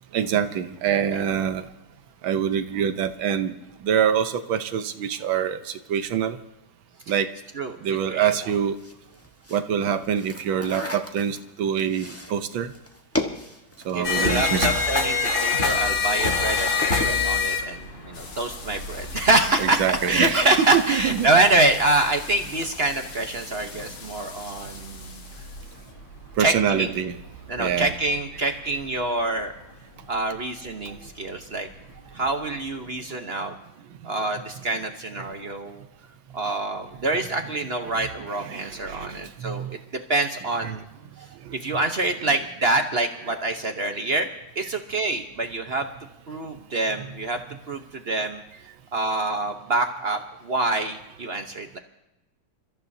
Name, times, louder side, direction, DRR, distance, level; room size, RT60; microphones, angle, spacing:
voice 1, 0.1-1.6 2.2-3.5 3.8-6.4 7.1-7.3 7.8-8.8 9.5-12.7 13.8-14.7 19.6-21.3 26.4-27.2 27.6-28.0 35.2-35.3 37.2-37.5 37.9-39.8 40.6-40.8 42.1-42.4 47.0-47.1, right 8 dB, 70° right, 10 dB, 1.6 m, -25 dB
sound 1, 8.7-16.1 16.4-17.2, left 1 dB, 10° left, 0.8 m, -35 dB
voice 2, 13.9-25.2 26.4-27.0 27.5-29.5 30.1-31.7 32.1-33.5 34.0-35.8 36.3-39.7 40.1-40.8 41.5-44.3 44.5-45.9 46.3-47.4 47.7-48.4 48.9-51.8, right 2 dB, 45° right, 5 dB, 0.8 m, -25 dB
sound 2, 14.0-29.4 30.1-30.4 30.7-31.3 32.0-32.1 32.5-32.6, left 4 dB, 35° left, 2.2 m, -28 dB
sound 3, 18.1-25.9, left 4 dB, 70° left, 2.6 m, -43 dB
28.5 x 14.5 x 2.8 m, 0.93 s
omnidirectional pair, 2.4 m